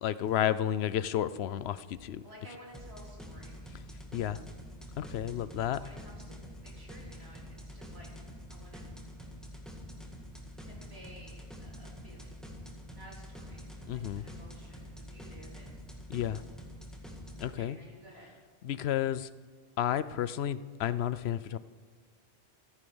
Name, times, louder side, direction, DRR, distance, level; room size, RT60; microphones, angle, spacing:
voice 1, 0.0-2.2 4.1-4.4 5.0-5.8 13.9-14.2 16.1-16.4 17.4-17.8 18.6-19.3 19.8-21.6, left 10 dB, 75° left, 16 dB, 0.8 m, -31 dB
voice 2, 2.2-3.5 5.7-6.4 6.6-8.1 8.5-8.9 10.6-12.4 12.9-15.7 17.4-18.3, equal, 70° right, -3 dB, 4.1 m, -54 dB
sound 1, 2.7-17.5, equal, ahead, 1.8 m, -46 dB
14.5 x 10.0 x 7.0 m, 1.5 s
omnidirectional pair, 1.1 m